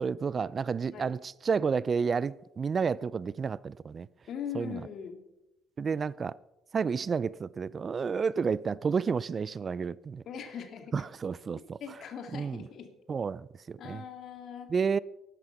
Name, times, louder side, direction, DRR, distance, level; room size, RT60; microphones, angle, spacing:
voice 1, 0.0-4.1 4.5-4.8 5.8-6.4 6.7-10.2 10.9-11.8 12.3-12.6 13.1-14.0 14.7-15.0, right 5 dB, 40° right, 0.4 m, -30 dB
voice 2, 4.3-5.2 10.2-11.1 11.8-12.9 13.8-14.7, left 7 dB, 60° left, 2.3 m, -41 dB
12.0 x 11.0 x 5.8 m
supercardioid pair, 70°, 0 cm